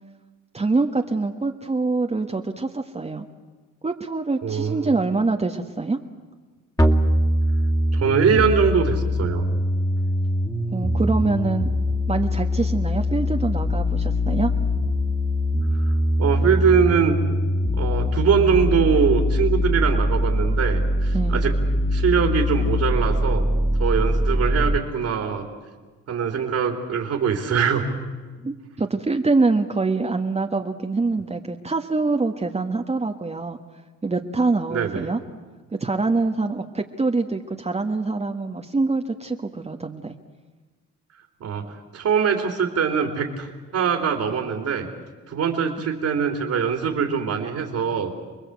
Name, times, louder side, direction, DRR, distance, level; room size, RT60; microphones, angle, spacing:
voice 1, 0.5-3.2 3.8-6.0 10.7-11.7 12.1-14.5 21.1-21.5 28.4-33.6 34.0-35.2 35.7-40.1, right 3 dB, 20° right, 4 dB, 1.4 m, -24 dB
voice 2, 4.4-4.9 7.9-9.4 15.9-16.0 16.2-17.2 17.7-21.5 21.9-23.5 23.8-25.5 26.1-27.8 34.7-35.1 41.4-44.9 45.3-48.2, right 6 dB, 65° right, 3 dB, 3.6 m, -22 dB
sound 1, 6.8-24.8, left 1 dB, 10° left, 2.5 m, -22 dB
29.5 x 20.5 x 8.3 m, 1.4 s
cardioid pair, 90°, 30 cm